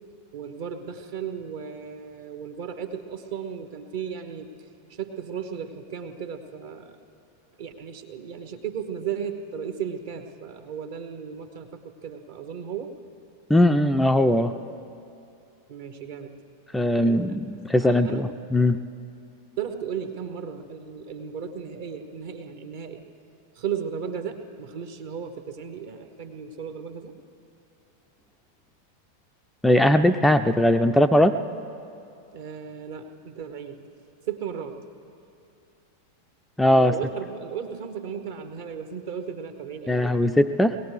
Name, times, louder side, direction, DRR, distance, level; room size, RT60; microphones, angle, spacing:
voice 1, 0.3-4.5 4.9-7.0 7.6-12.9 15.7-16.4 16.9-17.4 17.8-18.3 19.6-23.0 23.5-27.2 32.3-33.9 34.3-34.8 36.8-40.0 40.6-40.8, right 7 dB, 50° right, 7 dB, 1.1 m, -35 dB
voice 2, 13.5-14.5 16.7-18.8 29.6-31.4 36.6-36.9 39.9-40.8, left 1 dB, 5° left, 8 dB, 0.4 m, -20 dB
22.0 x 17.5 x 3.3 m, 2.6 s
figure-of-eight pair, 90°, 0 cm